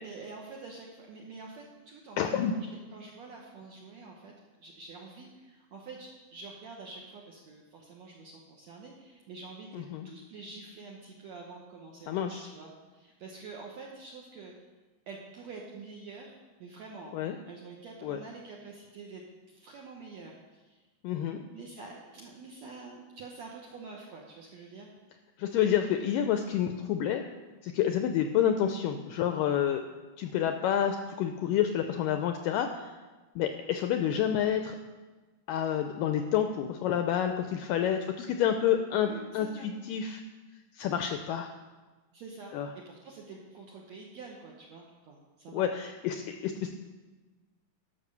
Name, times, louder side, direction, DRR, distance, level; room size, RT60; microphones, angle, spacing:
voice 1, 0.0-4.3 4.6-14.5 15.1-17.2 17.5-19.2 19.5-20.8 21.5-24.9 39.0-39.7 42.1-45.7, right 4 dB, 70° right, -1 dB, 1.7 m, -47 dB
voice 2, 2.2-2.5 9.7-10.1 12.1-12.5 17.1-17.4 18.0-18.2 21.0-21.4 25.4-27.2 27.6-29.8 30.2-32.9 33.4-34.8 35.5-40.2 40.7-41.5 42.5-42.7 45.5-46.7, left 9 dB, 85° left, 6 dB, 1.9 m, -29 dB
12.0 x 6.0 x 6.7 m, 1.2 s
omnidirectional pair, 4.4 m